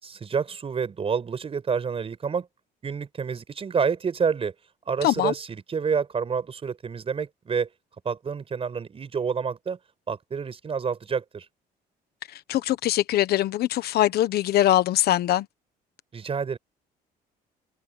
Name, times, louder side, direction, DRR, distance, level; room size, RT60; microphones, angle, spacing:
voice 1, 0.0-2.5 2.8-4.5 4.9-7.7 8.0-9.8 10.1-11.5 16.1-16.6, right 6 dB, 35° right, 5.4 m, -28 dB
voice 2, 5.0-5.3 12.3-15.5, left 13 dB, 70° left, 1.2 m, -22 dB
cardioid pair, 110°, 17 cm